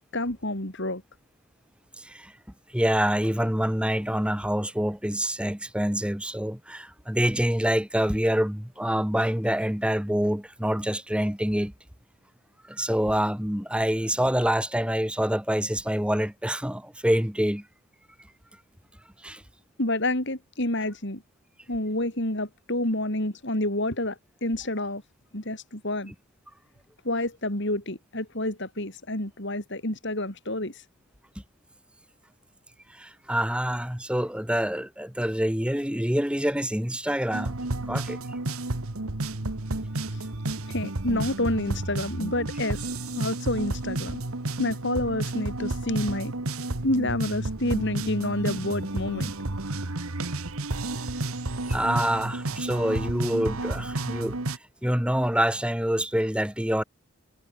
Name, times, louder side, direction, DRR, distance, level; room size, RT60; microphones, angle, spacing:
voice 1, 0.1-1.0 19.8-21.2 21.7-25.0 25.3-26.1 27.0-30.8 40.1-40.3 40.7-42.8 43.2-44.2 44.6-46.3 46.8-49.3, left 1 dB, 50° left, 4.1 m, -28 dB
voice 2, 2.0-2.3 2.7-11.7 12.7-17.6 19.2-19.4 32.9-38.2 51.7-54.4 54.8-56.8, equal, 5° right, 1.9 m, -26 dB
sound 1, 37.3-54.6, right 2 dB, 75° right, 1.7 m, -31 dB
head